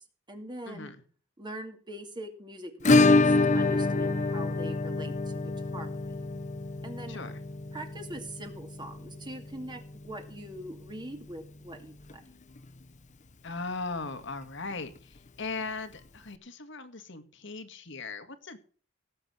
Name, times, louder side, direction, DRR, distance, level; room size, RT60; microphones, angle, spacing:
voice 1, 0.3-0.9 1.4-6.2 6.8-7.2 7.7-12.2, right 1 dB, 25° right, 4 dB, 2.4 m, -42 dB
Acoustic guitar / Strum, 2.8-11.5 11.7-11.8 12.1-12.2 12.6-12.7 14.7-14.8 15.9-16.0, left 2 dB, 40° left, 1.0 m, -27 dB
voice 2, 7.1-7.4 13.4-18.6, left 3 dB, 65° left, 9 dB, 2.1 m, -38 dB
17.5 x 7.8 x 6.3 m, 0.42 s
head